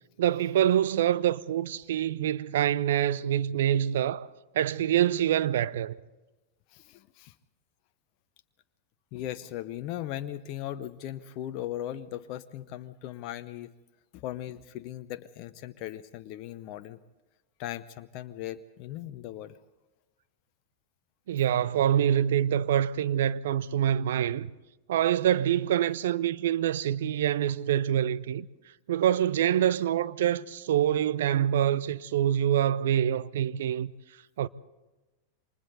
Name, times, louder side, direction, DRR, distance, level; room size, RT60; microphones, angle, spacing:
voice 1, 0.2-4.3 4.5-6.0 21.3-24.5 24.9-28.5 28.9-33.9 34.4-34.5, right 10 dB, 60° right, 0.6 m, -25 dB
voice 2, 6.7-7.3 9.1-13.7 14.1-17.0 17.6-19.6, left 12 dB, 40° left, 0.8 m, -38 dB
28.5 x 25.0 x 4.0 m
figure-of-eight pair, 90°, 0 cm